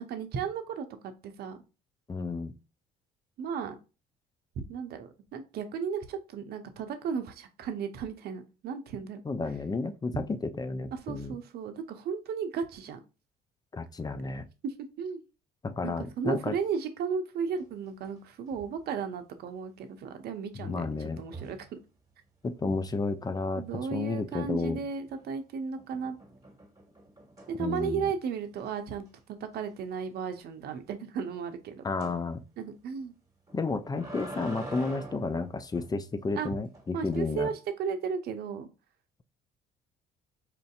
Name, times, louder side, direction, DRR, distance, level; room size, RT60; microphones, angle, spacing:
voice 1, 0.0-1.6 3.4-3.8 4.7-9.2 10.9-13.0 14.6-15.2 15.8-21.8 23.6-26.2 27.5-31.8 32.6-33.1 36.3-36.5 36.9-38.7, right 6 dB, 60° right, 0.7 m, -35 dB
voice 2, 2.1-2.5 9.2-11.4 13.7-14.5 15.6-16.6 20.6-21.2 22.4-23.6 23.9-24.8 27.6-28.1 31.8-32.4 33.5-37.5, left 3 dB, 20° left, 0.5 m, -32 dB
sound 1, 17.6-18.2 18.5-18.8 21.2-21.7 24.8-25.3 25.8-28.1 28.6-28.7 29.1-29.2 29.5-29.6 32.0-32.2 33.5-36.0 36.7-37.2, right 1 dB, 20° right, 1.6 m, -45 dB
4.4 x 2.6 x 2.4 m
supercardioid pair, 65°, 18 cm